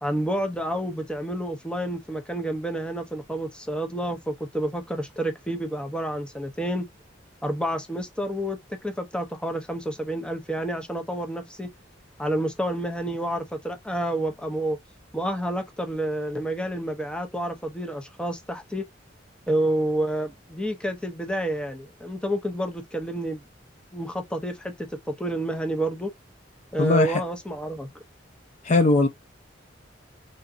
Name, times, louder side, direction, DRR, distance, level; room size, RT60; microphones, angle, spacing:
voice 1, 0.0-6.9 7.4-11.7 12.2-14.8 15.1-18.9 19.5-23.4 23.9-24.9 25.2-26.1 26.7-27.9, right 1 dB, 5° left, 0.8 m, -29 dB
voice 2, 26.8-27.2 28.6-29.1, left 2 dB, 40° left, 0.5 m, -19 dB
3.9 x 3.6 x 2.6 m
head